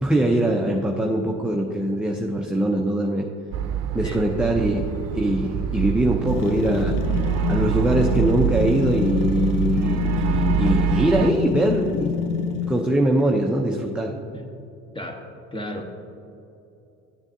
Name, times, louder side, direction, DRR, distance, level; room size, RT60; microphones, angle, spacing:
voice 1, 0.0-3.3 3.9-4.9 5.1-6.9 7.5-12.2 12.7-14.2, right 1 dB, 5° right, 0 dB, 0.6 m, -22 dB
sound 1, 3.5-11.3, right 11 dB, 55° right, 0.7 m, -26 dB
sound 2, 6.3-13.0, left 7 dB, 75° left, 0.6 m, -27 dB
voice 2, 15.5-16.0, equal, 15° left, 3 dB, 1.1 m, -33 dB
12.5 x 7.2 x 2.7 m, 2.7 s
supercardioid pair, 80°, 33 cm